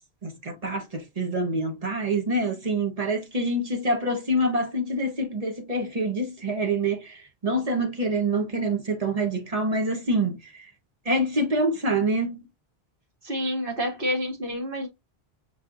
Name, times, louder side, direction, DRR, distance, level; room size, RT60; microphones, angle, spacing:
voice 1, 0.2-10.7 11.0-12.4, right 1 dB, 35° right, 1.1 m, -26 dB
voice 2, 13.2-14.9, equal, 55° right, 2.1 m, -28 dB
5.3 x 3.5 x 2.5 m
omnidirectional pair, 1.1 m